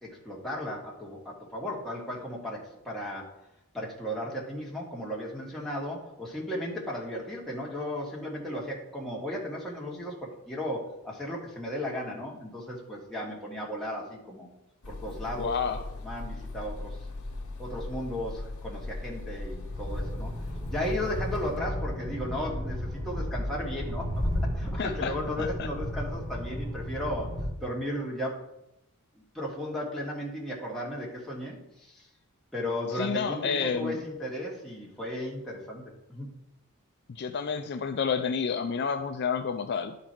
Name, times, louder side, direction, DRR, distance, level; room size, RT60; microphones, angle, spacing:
voice 1, 0.0-3.3 3.7-14.5 14.9-15.7 16.0-17.0 17.6-20.3 20.7-24.1 24.5-27.3 27.6-28.4 29.3-32.1 32.5-36.3, left 1 dB, ahead, -5 dB, 1.8 m, -35 dB
sound 1, 14.8-21.6, left 2 dB, 75° left, 1.3 m, -39 dB
voice 2, 15.4-15.8 24.8-25.7 32.9-34.0 37.1-40.0, left 6 dB, 50° left, 7 dB, 0.4 m, -30 dB
sound 2, 19.7-27.5, equal, 20° right, 3.1 m, -33 dB
11.0 x 4.0 x 4.4 m, 0.84 s
head